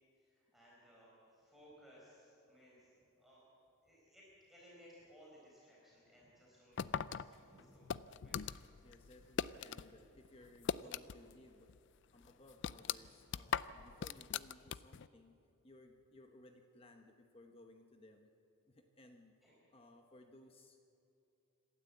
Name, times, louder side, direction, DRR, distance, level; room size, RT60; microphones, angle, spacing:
voice 1, 0.2-3.4 3.8-7.9 8.2-8.4 8.8-8.9 19.4-19.5, equal, ahead, -6 dB, 4.4 m, -62 dB
sound 1, 6.8-9.9 10.2-11.4 11.7-11.8 12.2-15.1, left 7 dB, 55° left, 0.4 m, -40 dB
voice 2, 8.2-11.7 12.1-15.4 15.6-18.3 18.7-19.4 19.7-20.8, left 1 dB, 25° left, 5 dB, 0.9 m, -61 dB
26.5 x 12.5 x 8.3 m, 2.7 s
head